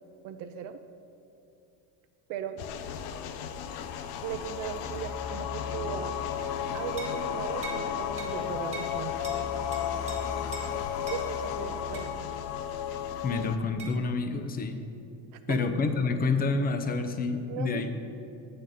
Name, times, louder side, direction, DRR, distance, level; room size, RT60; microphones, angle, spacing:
voice 1, 0.2-0.8 2.3-2.6 4.2-6.2 6.7-9.2 10.7-10.8 11.1-12.3 15.5-15.6 17.5-18.0, right 8 dB, 45° right, 8 dB, 0.4 m, -37 dB
sound 1, 2.6-13.6, left 8 dB, 80° left, 0.6 m, -33 dB
sound 2, 7.0-7.2 7.6-7.8 8.2-8.3 8.7-8.9 9.2-9.4 9.7-10.2 10.5-10.7 11.1-11.2 11.9-12.1 13.8-14.0, right 4 dB, 15° right, 1.6 m, -41 dB
voice 2, 13.2-14.8 15.5-18.0, left 4 dB, 20° left, 7 dB, 0.5 m, -28 dB
7.7 x 3.8 x 6.7 m, 2.8 s
supercardioid pair, 105°, 48 cm